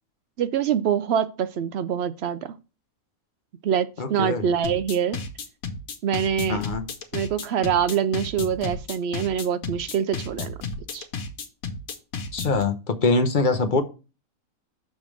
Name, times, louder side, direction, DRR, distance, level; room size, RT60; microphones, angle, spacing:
voice 1, 0.4-2.5 3.6-5.2 6.0-6.6 7.1-10.5 10.9-11.1, right 8 dB, 65° right, 0.7 m, -25 dB
voice 2, 4.0-4.4 6.5-6.9 12.3-13.8, left 3 dB, 40° left, 0.9 m, -23 dB
sound 1, 4.6-12.6, left 4 dB, 85° left, 1.4 m, -33 dB
6.5 x 3.5 x 6.0 m
omnidirectional pair, 1.4 m